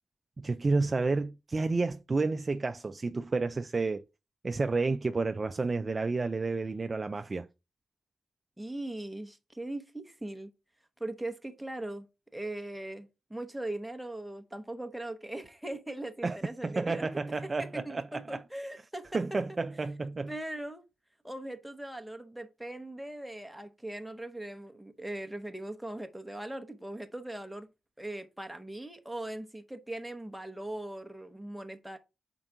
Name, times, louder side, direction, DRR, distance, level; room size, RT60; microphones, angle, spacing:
voice 1, 0.4-4.0 4.4-7.5 16.2-16.4 16.6-18.4 19.1-20.3, right 3 dB, 30° right, 0.3 m, -30 dB
voice 2, 8.6-10.5 11.0-12.1 12.3-19.2 20.3-20.8 21.2-27.7 28.0-32.0, right 1 dB, 5° right, 0.8 m, -40 dB
5.8 x 4.5 x 3.7 m
wide cardioid pair, 120°, 0 cm